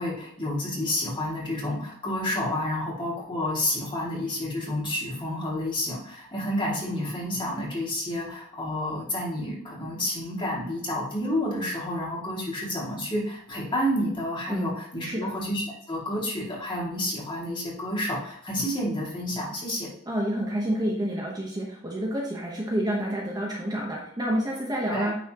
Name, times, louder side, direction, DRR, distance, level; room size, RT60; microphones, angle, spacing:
voice 1, 0.0-19.9 24.9-25.1, left 1 dB, 25° left, -5 dB, 2.4 m, -30 dB
voice 2, 20.1-25.2, equal, 20° right, -3 dB, 1.0 m, -29 dB
9.3 x 4.2 x 3.0 m, 0.70 s
head